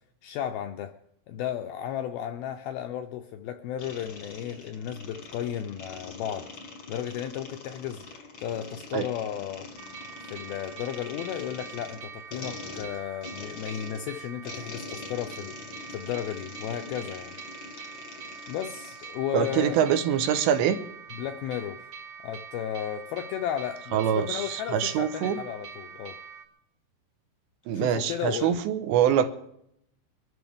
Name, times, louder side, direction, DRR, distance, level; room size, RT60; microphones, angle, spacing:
voice 1, 0.2-1.0 1.3-6.5 6.9-9.7 10.2-15.6 15.9-17.4 18.5-19.9 21.1-21.9 22.2-26.2 27.7-28.6, left 10 dB, 85° left, 6 dB, 2.2 m, -34 dB
sound 1, 3.8-19.2, left 4 dB, 55° left, 1.3 m, -44 dB
sound 2, 9.8-26.4, right 6 dB, 50° right, 1.0 m, -44 dB
voice 2, 19.3-20.8 23.9-25.4 27.7-29.3, right 9 dB, 85° right, 9 dB, 3.3 m, -24 dB
23.0 x 14.0 x 3.5 m, 0.75 s
omnidirectional pair, 5.0 m